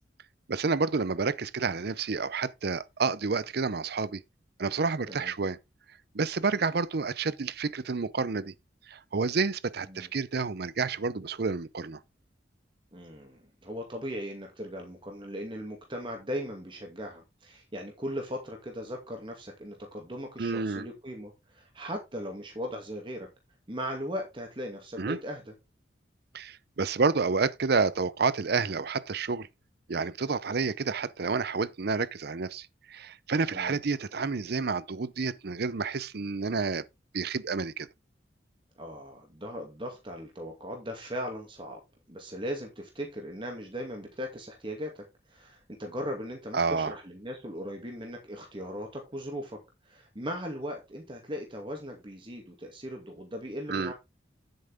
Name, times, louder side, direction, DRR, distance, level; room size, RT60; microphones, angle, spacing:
voice 1, 0.5-4.2 4.6-5.6 6.1-8.5 8.9-12.0 20.4-20.9 25.0-25.2 26.3-29.5 29.9-36.8 37.1-37.9 46.5-46.9 53.7-53.9, right 4 dB, 60° right, 0.6 m, -29 dB
voice 2, 12.9-23.3 23.7-25.5 33.5-33.8 38.8-41.8 42.1-45.0 45.3-49.6 49.9-53.9, equal, 30° right, 2.2 m, -38 dB
10.0 x 8.1 x 3.5 m
head